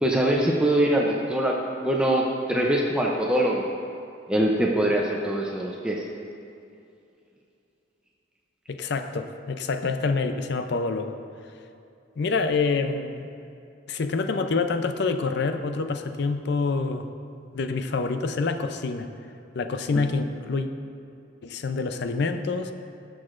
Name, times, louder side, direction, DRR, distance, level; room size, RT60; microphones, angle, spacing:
voice 1, 0.0-3.6 4.3-6.1 19.9-20.0, right 1 dB, 5° right, -2 dB, 0.5 m, -23 dB
voice 2, 8.7-11.2 12.2-13.3 13.9-17.1 17.5-19.1 19.5-20.7 21.4-22.7, left 4 dB, 65° left, 8 dB, 0.5 m, -27 dB
18.0 x 6.4 x 2.5 m, 2.6 s
head